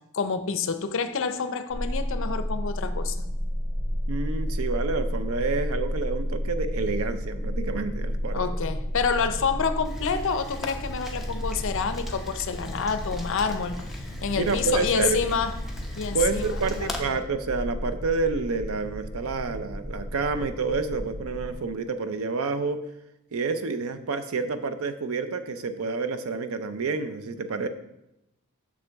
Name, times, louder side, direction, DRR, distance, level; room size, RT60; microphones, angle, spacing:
voice 1, 0.1-3.2 8.3-13.8 14.2-15.5 16.0-17.2, left 5 dB, 60° left, 10 dB, 0.5 m, -28 dB
sound 1, 1.7-21.5, equal, 35° right, 2.0 m, -32 dB
voice 2, 4.1-8.4 14.4-15.2 16.1-22.8 23.3-27.7, right 4 dB, 75° right, 10 dB, 0.6 m, -28 dB
Rain, 9.8-17.0, left 1 dB, ahead, 0.8 m, -40 dB
6.8 x 6.4 x 3.5 m, 0.86 s
head